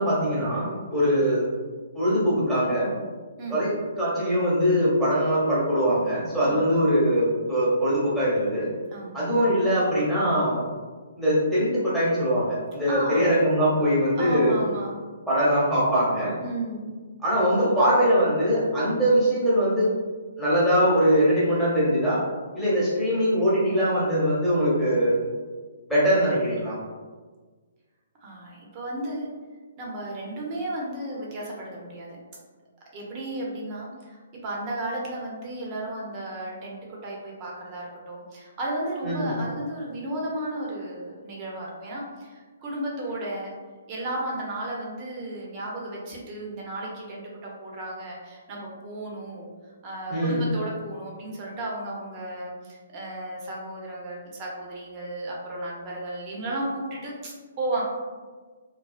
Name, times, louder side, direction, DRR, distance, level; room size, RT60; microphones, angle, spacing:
voice 1, 0.0-1.4 1.9-2.9 3.5-8.7 9.1-10.6 11.2-14.6 15.3-16.3 17.2-19.9 20.4-22.2 22.5-25.2 25.9-26.7 39.0-39.4 50.1-50.4, equal, ahead, -10 dB, 0.9 m, -22 dB
voice 2, 8.9-9.3 12.8-13.3 14.2-15.0 16.4-16.9 28.2-29.3 29.8-32.2 32.9-43.5 43.9-49.5 49.8-57.8, right 1 dB, 30° right, -3 dB, 0.7 m, -34 dB
2.4 x 2.3 x 2.4 m, 1.4 s
figure-of-eight pair, 135°, 0 cm